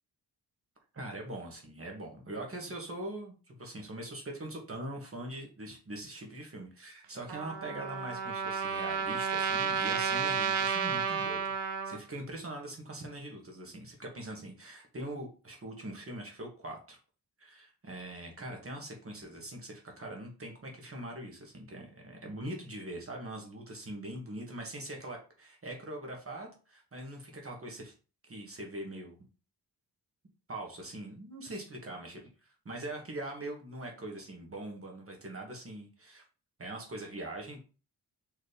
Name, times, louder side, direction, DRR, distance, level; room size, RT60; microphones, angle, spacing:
voice 1, 0.9-11.5 11.8-17.0 17.4-27.9 28.2-29.2 30.5-36.2 36.6-37.6, right 1 dB, 35° right, 1 dB, 1.4 m, -42 dB
Trumpet, 7.3-12.0, right 6 dB, 90° right, 0.8 m, -32 dB
4.3 x 3.2 x 3.4 m, 0.35 s
cardioid pair, 80°, 41 cm